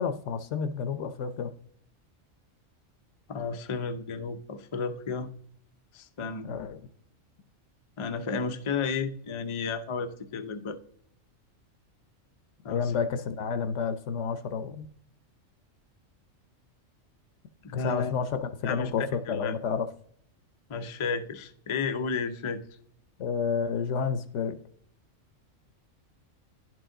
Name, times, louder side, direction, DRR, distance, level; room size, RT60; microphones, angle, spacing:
voice 1, 0.0-1.5 6.4-6.8 12.7-14.9 17.7-19.9 23.2-24.6, left 6 dB, 70° left, 10 dB, 0.9 m, -30 dB
voice 2, 3.3-5.3 5.9-6.5 8.0-10.8 12.6-13.0 17.6-18.1 18.6-19.6 20.7-22.6, left 5 dB, 50° left, 8 dB, 0.3 m, -32 dB
10.5 x 4.7 x 3.8 m, 0.66 s
omnidirectional pair, 1.4 m